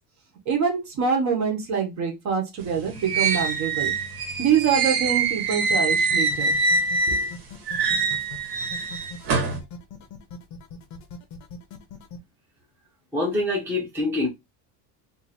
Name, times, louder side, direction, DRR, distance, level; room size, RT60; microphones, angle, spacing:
voice 1, 0.5-3.9 4.4-6.5 7.1-7.3, right 7 dB, 40° right, 1.1 m, -25 dB
sound 1, 2.6-7.3 7.7-9.6, right 4 dB, 55° right, 1.3 m, -24 dB
sound 2, 5.6-12.2, left 5 dB, 40° left, 0.7 m, -41 dB
voice 2, 13.1-14.3, left 2 dB, 5° right, 0.8 m, -25 dB
2.7 x 2.6 x 4.2 m
cardioid pair, 175°, 45 cm